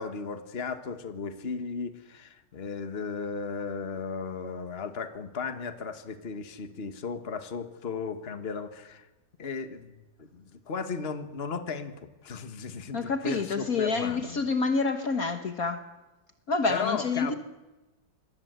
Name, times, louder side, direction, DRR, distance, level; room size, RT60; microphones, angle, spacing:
voice 1, 0.0-9.1 9.4-14.4 16.7-17.3, left 5 dB, 35° left, 10 dB, 1.6 m, -35 dB
voice 2, 12.9-15.9 16.5-17.3, left 4 dB, 50° left, 8 dB, 1.6 m, -28 dB
26.5 x 22.0 x 8.1 m, 1.1 s
omnidirectional pair, 2.0 m